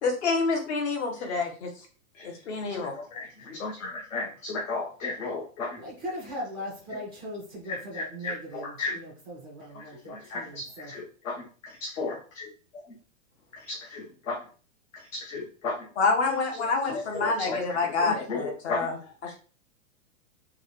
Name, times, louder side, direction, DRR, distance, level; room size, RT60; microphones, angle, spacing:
voice 1, 0.0-1.7 2.2-2.9 16.0-19.0 19.2-19.3, left 4 dB, 55° left, 2 dB, 1.4 m, -27 dB
voice 2, 2.7-5.8 7.7-8.9 9.7-12.4 13.5-14.4 14.9-15.8 16.9-18.9, left 3 dB, 70° left, -3 dB, 1.4 m, -35 dB
voice 3, 5.8-10.9, equal, 5° left, -5 dB, 0.4 m, -39 dB
4.4 x 2.5 x 3.2 m, 0.39 s
hypercardioid pair, 160°, 40 cm